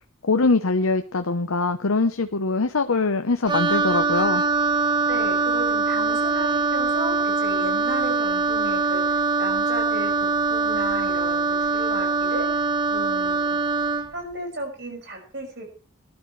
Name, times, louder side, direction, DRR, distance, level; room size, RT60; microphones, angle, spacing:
voice 1, 0.2-4.4, left 3 dB, 85° left, 8 dB, 0.9 m, -22 dB
Wind instrument woodwind instrument, 3.5-14.1, right 4 dB, 20° right, 1.2 m, -23 dB
voice 2, 5.1-12.6 12.9-13.6 14.1-15.6, right 1 dB, 55° right, 2 dB, 5.9 m, -34 dB
20.5 x 12.0 x 3.2 m, 0.36 s
head